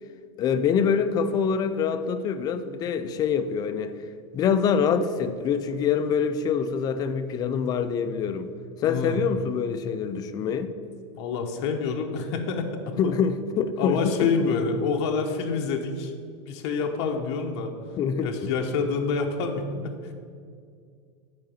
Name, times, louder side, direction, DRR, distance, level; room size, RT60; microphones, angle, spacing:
voice 1, 0.4-3.9 4.3-8.5 8.8-10.7 13.0-14.5 18.0-18.5, left 6 dB, 25° left, 10 dB, 0.4 m, -25 dB
voice 2, 8.9-9.2 11.1-13.1 13.8-16.1 16.5-17.7 18.2-20.0, left 5 dB, 60° left, 3 dB, 0.9 m, -27 dB
6.6 x 4.9 x 6.9 m, 2.2 s
supercardioid pair, 155°, 16 cm